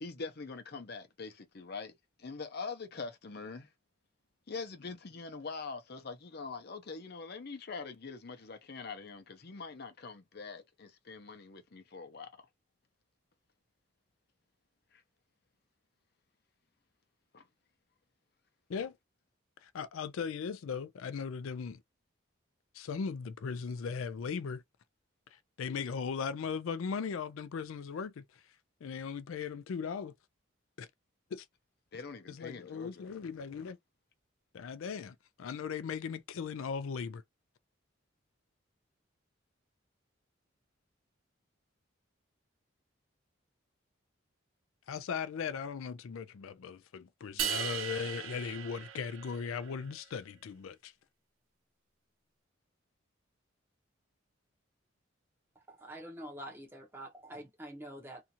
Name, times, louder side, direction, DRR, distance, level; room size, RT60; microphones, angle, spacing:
voice 1, 0.0-1.9 2.2-3.7 4.5-12.3 17.3-17.4 31.9-33.1, left 4 dB, 50° left, 0.6 m, -43 dB
voice 2, 19.6-21.8 22.7-24.6 25.3-28.2 28.8-30.1 30.8-30.9 31.3-31.5 32.3-33.8 34.5-37.2 44.9-50.9, left 6 dB, 85° left, 0.4 m, -38 dB
sound 1, 47.4-49.7, right 8 dB, 80° right, 0.5 m, -37 dB
voice 3, 55.7-58.2, right 1 dB, 10° right, 0.8 m, -46 dB
2.7 x 2.4 x 2.7 m
head